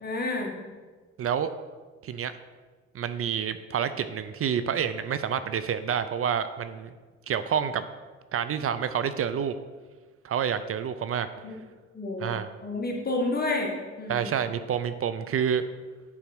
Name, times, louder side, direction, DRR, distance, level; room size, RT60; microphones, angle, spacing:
voice 1, 0.0-0.6 11.4-11.5 11.9-14.3, left 2 dB, 30° left, 0 dB, 1.6 m, -30 dB
voice 2, 1.2-1.5 2.0-2.3 2.9-6.9 7.3-7.8 8.3-9.5 10.2-11.3 12.2-12.5 14.1-15.6, right 8 dB, 50° right, 12 dB, 0.5 m, -28 dB
7.2 x 4.7 x 6.1 m, 1.4 s
cardioid pair, 90°, 30 cm